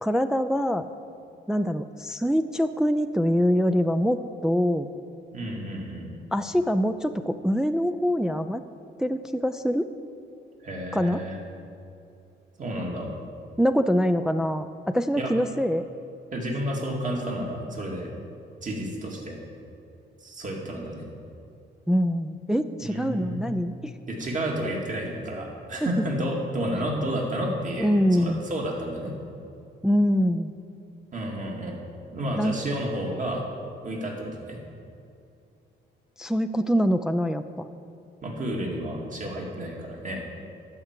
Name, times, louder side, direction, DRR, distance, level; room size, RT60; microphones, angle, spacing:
voice 1, 0.0-0.9 1.5-4.9 6.3-8.6 9.0-9.9 10.9-11.2 13.6-15.9 21.9-23.9 25.8-25.9 27.8-28.4 29.8-30.5 32.4-32.5 36.2-37.7, equal, 5° right, 8 dB, 0.4 m, -24 dB
voice 2, 5.3-6.1 10.6-11.4 12.6-13.1 15.2-15.3 16.3-18.1 18.6-19.4 20.2-21.1 22.8-23.6 24.1-29.1 31.1-31.8 32.1-33.4 33.8-34.6 38.2-40.2, right 1 dB, 40° right, -1 dB, 2.3 m, -31 dB
12.0 x 4.9 x 8.1 m, 2.6 s
cardioid pair, 90°, 20 cm